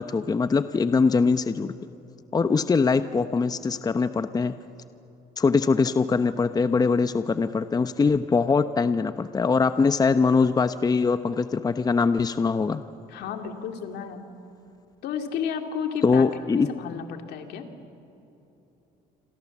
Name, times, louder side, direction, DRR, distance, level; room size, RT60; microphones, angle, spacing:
voice 1, 0.0-1.7 2.3-4.5 5.4-12.8 16.0-16.7, left 4 dB, 20° left, 11 dB, 0.8 m, -22 dB
voice 2, 13.1-14.3 15.0-16.2 16.5-17.6, left 7 dB, 75° left, 5 dB, 2.6 m, -32 dB
27.5 x 27.5 x 7.3 m, 3.0 s
cardioid pair, 110°, 17 cm